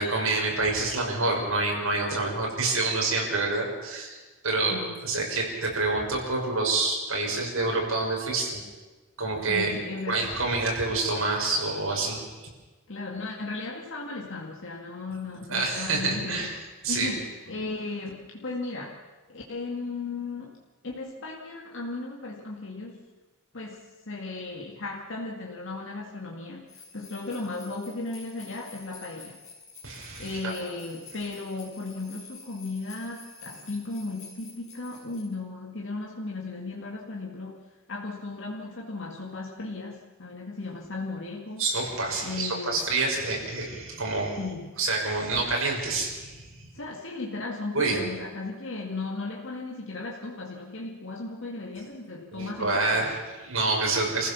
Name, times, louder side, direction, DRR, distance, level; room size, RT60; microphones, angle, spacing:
voice 1, 0.0-4.2 4.4-4.7 5.0-8.6 9.2-9.8 10.1-12.2 15.5-16.6 16.8-17.1 29.8-30.5 41.6-44.4 44.8-46.7 47.7-48.0 52.3-54.3, right 3 dB, 70° right, -1 dB, 6.3 m, -27 dB
voice 2, 4.7-5.0 9.5-10.3 12.9-16.5 16.9-19.0 19.3-20.6 20.8-23.0 23.5-29.4 30.2-37.6 37.9-41.7 42.2-42.8 44.4-44.8 46.7-53.2, left 3 dB, 60° left, -1 dB, 2.1 m, -36 dB
sound 1, 26.7-35.2, left 5 dB, 35° left, 7.3 m, -49 dB
27.0 x 15.5 x 7.2 m, 1.2 s
head